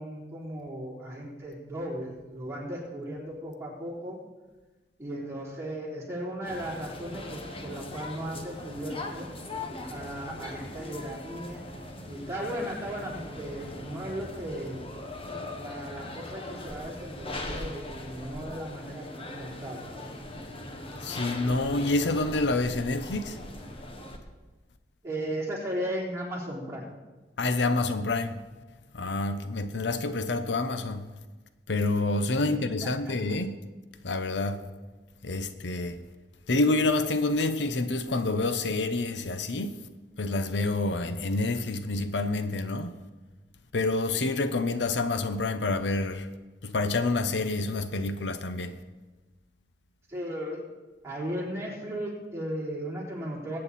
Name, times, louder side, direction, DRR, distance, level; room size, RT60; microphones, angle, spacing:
voice 1, 0.0-4.2 5.0-9.3 9.9-11.6 12.1-14.9 15.5-19.9 25.0-26.9 32.4-33.1 50.1-50.6 51.0-53.6, right 1 dB, 15° right, 3.5 m, -36 dB
sound 1, 6.4-24.2, left 1 dB, 35° left, 1.3 m, -40 dB
voice 2, 21.0-23.4 27.4-28.4 28.9-31.1 31.7-33.6 34.0-34.6 35.2-36.0 36.5-39.8 40.2-42.9 43.7-46.3 46.6-48.8, left 2 dB, 90° left, 0.8 m, -28 dB
21.0 x 8.8 x 4.2 m
head